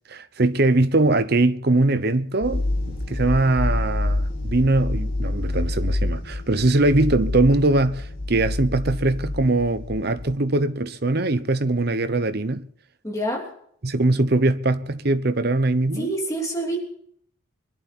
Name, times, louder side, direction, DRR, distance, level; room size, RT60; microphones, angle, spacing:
voice 1, 0.1-12.7 13.8-16.1, right 2 dB, 50° right, 0.9 m, -21 dB
sound 1, 2.4-10.2, left 2 dB, 55° left, 6.0 m, -27 dB
voice 2, 13.0-13.5 16.0-16.8, right 1 dB, 15° left, 2.9 m, -26 dB
22.5 x 11.5 x 4.2 m
head